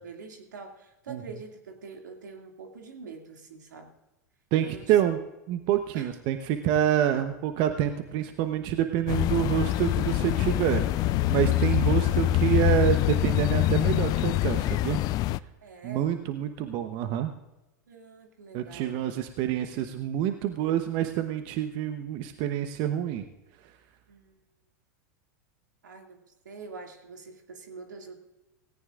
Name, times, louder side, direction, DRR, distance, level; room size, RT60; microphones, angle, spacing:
voice 1, 0.0-3.9 4.6-5.0 5.9-6.1 15.6-16.1 17.9-19.0 19.7-19.8 24.1-24.4 25.8-28.1, right 4 dB, 85° right, 3 dB, 2.4 m, -45 dB
voice 2, 4.5-5.2 5.5-15.0 15.8-17.3 18.5-23.2, right 11 dB, 50° right, 8 dB, 1.0 m, -27 dB
sound 1, 9.1-15.4, left 16 dB, 40° left, 0.4 m, -25 dB
18.0 x 17.0 x 2.5 m, 0.98 s
hypercardioid pair, 100°, 10 cm